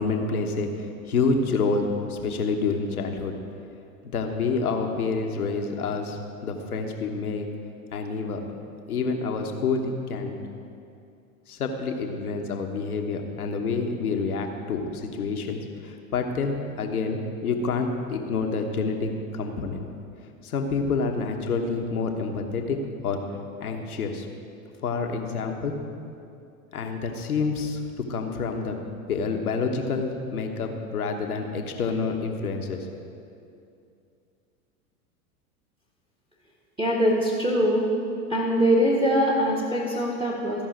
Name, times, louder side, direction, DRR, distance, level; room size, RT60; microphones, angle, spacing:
voice 1, 0.0-3.4 4.0-7.5 7.9-8.4 8.9-10.4 11.5-19.9 20.4-22.8 23.0-23.2 23.6-24.3 24.8-25.8 26.7-27.8 28.1-28.8 29.1-32.9, left 4 dB, 85° left, 4 dB, 1.2 m, -28 dB
voice 2, 36.8-37.9 38.3-40.7, equal, 10° right, -3 dB, 1.5 m, -22 dB
15.0 x 5.4 x 5.0 m, 2.6 s
hypercardioid pair, 90°, 43 cm